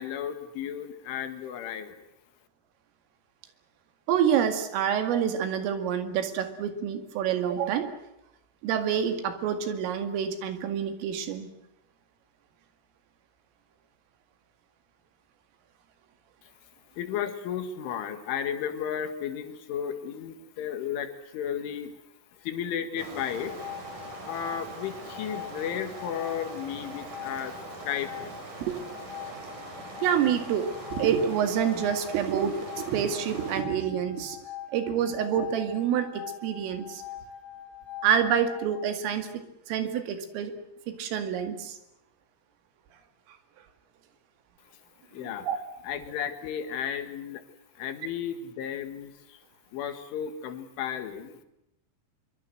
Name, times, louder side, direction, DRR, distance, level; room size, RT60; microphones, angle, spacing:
voice 1, 0.0-2.1 16.4-16.5 16.9-22.0 22.4-23.9 24.2-27.5 27.8-28.3 45.1-45.5 45.8-47.4 47.8-49.4 49.7-51.4, left 8 dB, 70° left, 9 dB, 4.2 m, -34 dB
voice 2, 4.1-7.9 8.6-11.5 28.6-28.8 30.0-34.4 34.7-37.0 38.0-40.5 40.9-41.8 45.4-45.6, right 8 dB, 80° right, 8 dB, 4.7 m, -27 dB
sound 1, 23.0-33.6, right 2 dB, 40° right, 5.5 m, -42 dB
sound 2, 23.1-38.9, left 9 dB, 45° left, 4.1 m, -43 dB
24.5 x 23.5 x 7.9 m, 0.85 s
omnidirectional pair, 5.9 m